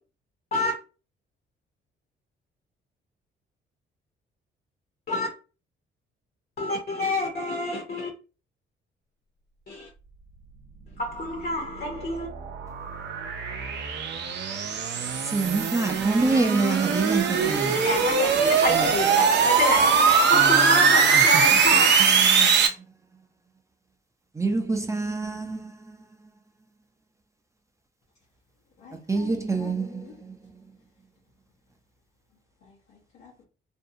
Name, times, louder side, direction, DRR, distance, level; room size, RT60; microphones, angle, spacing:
voice 1, 6.6-8.1 9.7-9.9 11.0-12.3 17.7-22.1, left 1 dB, 50° left, 0.8 m, -27 dB
sound 1, 11.4-22.7, right 6 dB, 60° right, 0.5 m, -21 dB
voice 2, 15.2-18.0 18.7-19.5 20.3-22.7 24.3-26.3 29.1-30.6, right 3 dB, 15° right, 0.5 m, -28 dB
voice 3, 28.8-30.1 32.6-33.4, left 6 dB, 85° left, 0.9 m, -47 dB
2.6 x 2.2 x 2.7 m
cardioid pair, 90°, 20 cm